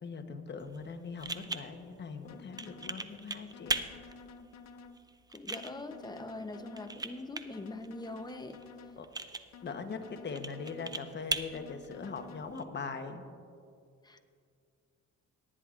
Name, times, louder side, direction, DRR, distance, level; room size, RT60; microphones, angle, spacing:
voice 1, 0.0-3.8 9.0-9.1 9.6-13.3, left 5 dB, 35° left, 6 dB, 1.0 m, -41 dB
sound 1, 0.6-12.6, right 3 dB, 15° right, 0.5 m, -41 dB
sound 2, 2.2-3.0 3.5-5.0 5.5-7.0 7.5-9.0 9.5-11.0 11.5-12.4, left 4 dB, 60° left, 0.7 m, -52 dB
voice 2, 5.3-8.6 14.0-14.2, left 2 dB, 15° left, 7 dB, 0.8 m, -42 dB
18.5 x 9.8 x 2.5 m, 2.4 s
cardioid pair, 90°, 30 cm